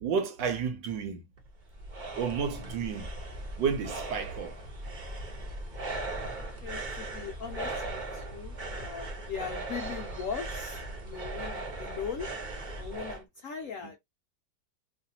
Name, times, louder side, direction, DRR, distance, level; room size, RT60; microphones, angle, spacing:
voice 1, 0.0-1.2 2.2-3.1 3.6-4.6 13.8-14.0, right 6 dB, 70° right, 1.3 m, -31 dB
sound 1, 1.4-13.2, right 2 dB, 45° right, 0.6 m, -38 dB
voice 2, 6.3-12.3 12.8-14.0, left 6 dB, 85° left, 0.7 m, -40 dB
3.2 x 2.4 x 2.7 m
omnidirectional pair, 2.2 m